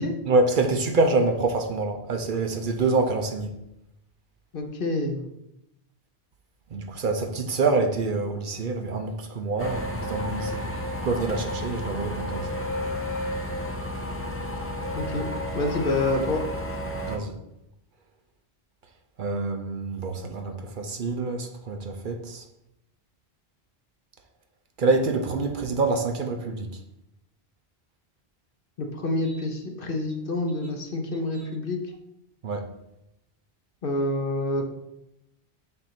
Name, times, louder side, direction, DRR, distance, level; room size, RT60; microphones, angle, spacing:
voice 1, 0.3-3.6 6.7-10.6 11.0-12.5 17.1-17.4 19.2-22.4 24.8-26.7 32.4-32.7, right 3 dB, 55° right, 5 dB, 0.8 m, -26 dB
voice 2, 4.5-5.2 14.9-15.2 15.5-16.4 28.8-31.8 33.8-34.6, left 2 dB, 60° left, 3 dB, 1.1 m, -27 dB
sound 1, 9.6-17.2, left 1 dB, 15° left, 0.6 m, -31 dB
7.8 x 2.6 x 5.8 m, 0.87 s
omnidirectional pair, 1.1 m